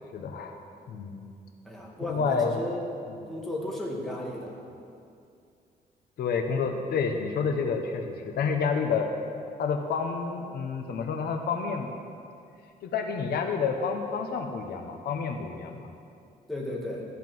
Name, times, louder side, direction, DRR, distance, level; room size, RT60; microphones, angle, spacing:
voice 1, 0.1-0.6 0.9-1.2 2.0-2.6 3.2-3.3 6.2-9.1 9.6-11.9 12.8-15.9, left 5 dB, 75° left, 4 dB, 1.0 m, -29 dB
voice 2, 1.6-2.8 3.3-4.5 16.5-17.1, left 1 dB, ahead, -3 dB, 1.8 m, -34 dB
14.0 x 5.8 x 7.7 m, 2.5 s
wide cardioid pair, 165°, 17 cm